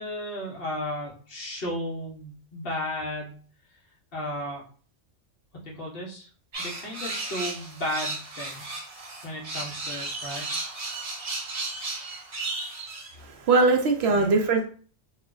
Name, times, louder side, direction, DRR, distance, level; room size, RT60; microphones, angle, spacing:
voice 1, 0.0-3.4 4.1-4.6 5.6-6.3 6.6-8.8 9.2-10.5 14.1-14.3, left 1 dB, 50° left, -3 dB, 1.2 m, -34 dB
sound 1, 6.5-13.1, right 3 dB, 50° right, 1.1 m, -34 dB
voice 2, 13.2-14.7, right 3 dB, 65° right, 3 dB, 0.8 m, -21 dB
3.2 x 2.3 x 3.7 m, 0.43 s
omnidirectional pair, 1.2 m